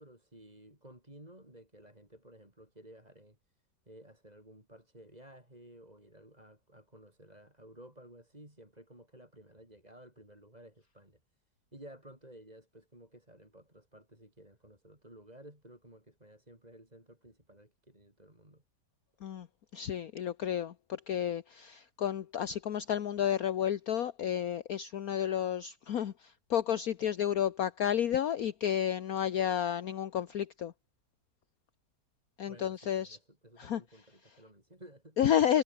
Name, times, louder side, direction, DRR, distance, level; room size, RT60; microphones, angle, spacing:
voice 1, 0.0-3.4 3.9-11.2 11.7-18.6 32.4-35.2, right 1 dB, 20° right, 6.3 m, -55 dB
voice 2, 19.7-30.7 32.4-33.2 33.6-33.8 35.2-35.6, left 10 dB, 60° left, 1.4 m, -31 dB
omnidirectional pair, 1.8 m